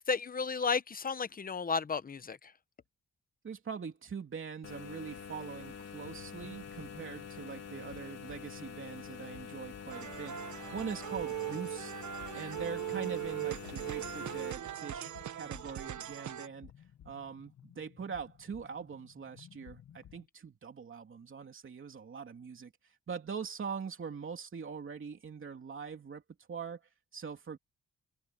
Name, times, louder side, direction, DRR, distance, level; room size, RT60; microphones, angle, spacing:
voice 1, 0.0-2.5, left 5 dB, 30° left, 0.9 m, -33 dB
voice 2, 3.4-11.9 12.3-16.7 17.0-26.2 26.5-27.6, right 6 dB, 45° right, 3.0 m, -43 dB
sound 1, 4.6-14.5, left 7 dB, 60° left, 3.4 m, -46 dB
sound 2, 6.0-20.3, left 10 dB, 75° left, 1.5 m, -57 dB
sound 3, 9.9-16.5, right 12 dB, 75° right, 1.3 m, -39 dB
wide cardioid pair, 135°, 30 cm